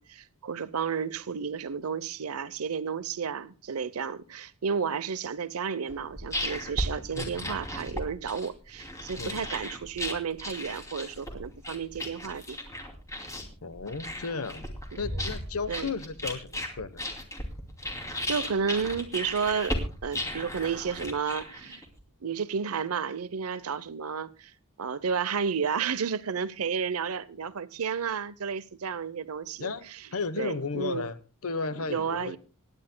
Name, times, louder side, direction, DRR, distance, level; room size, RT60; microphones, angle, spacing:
voice 1, 0.0-12.6 14.9-15.2 15.7-15.9 18.3-19.8 20.0-21.8 22.2-24.5 24.8-30.0 30.4-31.1 31.8-32.4, right 6 dB, 70° right, 0.7 m, -32 dB
sound 1, 5.9-22.0, left 1 dB, 15° left, 2.7 m, -36 dB
voice 2, 7.1-7.6 9.2-9.4 13.6-14.7 15.0-17.0 29.6-31.2 31.4-32.4, left 4 dB, 75° left, 1.0 m, -34 dB
26.0 x 10.5 x 2.2 m
head